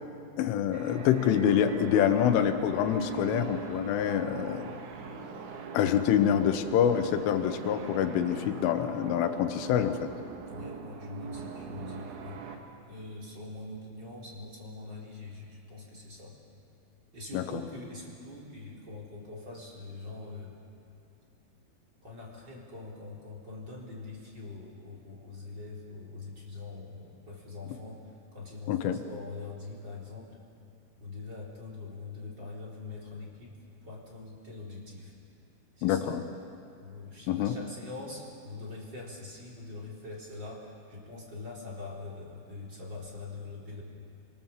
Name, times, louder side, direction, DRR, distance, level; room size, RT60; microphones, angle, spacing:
voice 1, 0.4-4.7 5.7-10.1 17.3-17.4 28.7-29.0 35.8-36.2 37.3-37.6, left 9 dB, 85° left, 7 dB, 3.7 m, -26 dB
sound 1, 0.7-12.6, right 6 dB, 75° right, 4.1 m, -41 dB
voice 2, 10.4-12.4 12.8-16.4 17.1-20.6 22.0-30.4 31.0-33.6 33.8-35.1 35.8-36.2 36.8-43.8, left 3 dB, 25° right, -3 dB, 4.3 m, -43 dB
28.5 x 24.5 x 7.4 m, 2.5 s
omnidirectional pair, 5.5 m